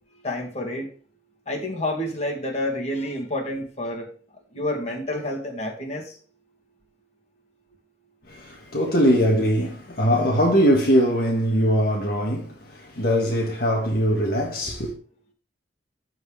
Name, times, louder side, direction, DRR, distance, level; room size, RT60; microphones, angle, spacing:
voice 1, 0.2-0.9 1.5-4.1 4.5-6.2, left 1 dB, 40° left, 2.4 m, -29 dB
voice 2, 8.3-14.9, equal, 60° left, 1.7 m, -21 dB
14.0 x 4.7 x 3.5 m
head